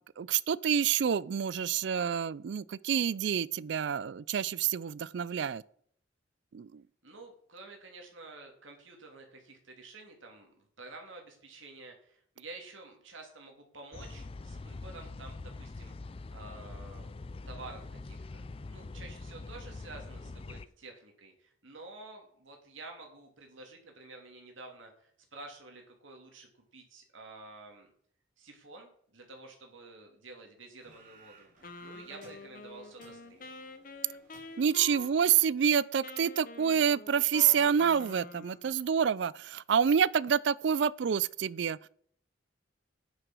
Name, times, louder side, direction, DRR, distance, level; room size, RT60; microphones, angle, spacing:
voice 1, 0.2-5.6 6.5-6.8 34.6-41.9, right 8 dB, 60° right, 0.4 m, -28 dB
voice 2, 7.0-17.1 17.5-18.4 18.7-27.9 28.4-31.5 31.8-33.4, right 3 dB, 80° right, 2.8 m, -50 dB
sound 1, 13.9-20.7, left 3 dB, 30° left, 0.4 m, -44 dB
sound 2, 30.8-35.7, right 2 dB, 45° right, 3.7 m, -60 dB
Wind instrument woodwind instrument, 31.6-38.8, left 3 dB, 45° left, 1.0 m, -47 dB
9.7 x 8.0 x 6.2 m
head